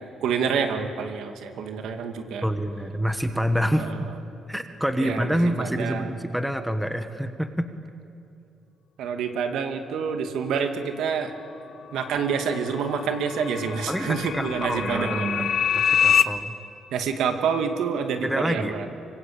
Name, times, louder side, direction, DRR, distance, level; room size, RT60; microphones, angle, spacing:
voice 1, 0.0-2.5 3.8-4.0 5.0-6.1 9.0-11.3 11.9-15.5 16.9-18.9, right 6 dB, 80° right, 6 dB, 2.3 m, -27 dB
voice 2, 2.4-3.9 4.5-7.7 13.9-16.6 18.2-18.8, equal, ahead, 8 dB, 1.2 m, -27 dB
sound 1, 11.9-16.2, left 8 dB, 55° left, 1.0 m, -25 dB
25.5 x 24.5 x 8.8 m, 2.6 s
cardioid pair, 155°, 0 cm